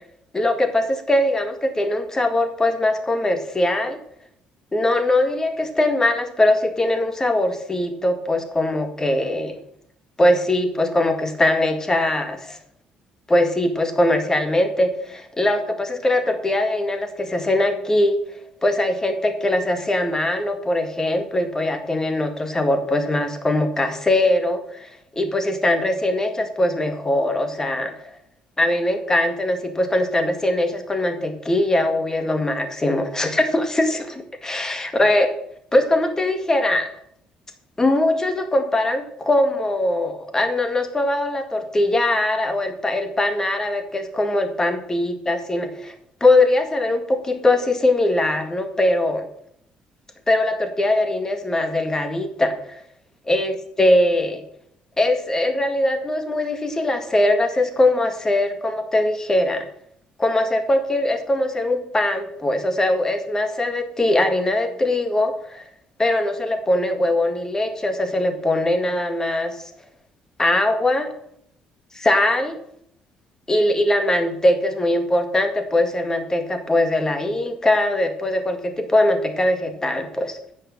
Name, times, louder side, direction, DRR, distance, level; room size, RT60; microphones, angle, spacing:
voice 1, 0.3-4.0 4.7-9.6 10.2-12.6 13.3-18.2 18.6-24.9 25.2-28.1 28.6-35.3 35.7-36.9 37.8-45.9 46.2-49.3 50.3-52.8 53.3-54.4 55.0-59.7 60.2-65.6 66.0-69.6 70.4-71.1 72.0-72.6 73.5-80.4, left 1 dB, 20° left, 7 dB, 2.0 m, -21 dB
10.0 x 6.7 x 7.5 m, 0.69 s
supercardioid pair, 80°, 3 cm